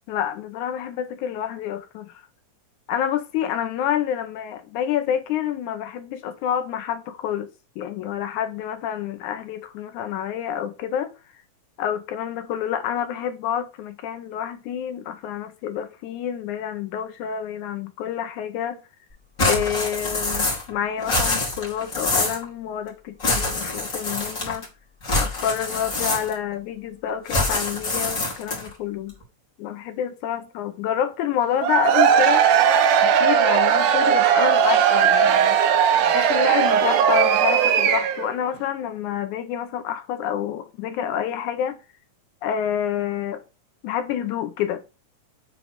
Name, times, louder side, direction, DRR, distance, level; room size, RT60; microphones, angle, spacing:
voice 1, 0.1-2.3 2.9-7.5 7.8-11.1 11.8-18.8 19.4-24.7 25.2-29.1 29.6-32.4 33.0-35.6 36.1-41.8 42.4-43.4 43.8-44.8, left 10 dB, 75° left, 2.2 m, -28 dB
sound 1, 19.4-20.7 21.0-22.4 23.2-24.7 25.0-26.5 27.3-28.7, left 2 dB, 25° left, 2.5 m, -25 dB
Cheering / Crowd, 31.6-38.3, right 8 dB, 75° right, 2.4 m, -18 dB
9.1 x 3.9 x 6.0 m
omnidirectional pair, 3.7 m